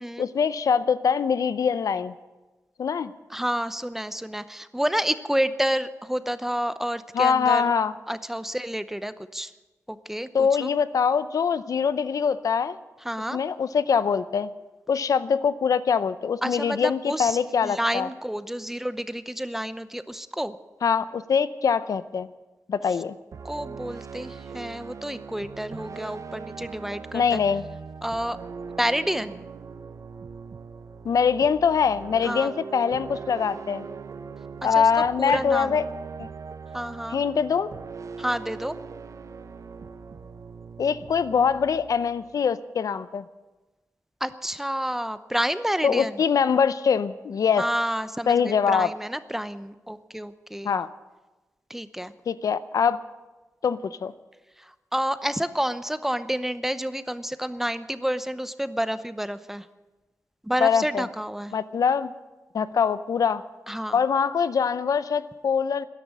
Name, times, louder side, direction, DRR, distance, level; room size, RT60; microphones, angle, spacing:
voice 1, 0.2-2.1 2.8-3.1 7.1-7.9 10.3-12.8 13.3-14.5 14.9-18.1 20.8-22.3 22.7-23.1 27.1-27.6 31.0-33.8 34.6-35.8 36.2-36.3 37.1-37.7 40.8-43.2 45.8-47.6 48.3-48.9 50.6-50.9 52.3-53.0 53.6-54.1 60.6-61.0 61.5-62.1 62.5-63.4 63.9-65.9, left 6 dB, 80° left, 15 dB, 0.6 m, -23 dB
voice 2, 3.3-7.7 8.1-9.5 9.9-10.7 13.0-13.4 16.4-20.6 23.4-27.4 28.0-28.4 28.8-29.4 32.2-32.5 34.6-34.9 35.2-35.8 36.7-37.2 38.2-38.7 44.2-46.2 47.6-50.8 51.7-52.1 54.6-59.7 60.4-61.5 63.7-64.0, equal, 5° right, 13 dB, 0.7 m, -29 dB
sound 1, 23.3-42.5, right 5 dB, 60° right, 0.8 m, -40 dB
13.5 x 11.0 x 9.6 m, 1.1 s
wide cardioid pair, 100°, 6 cm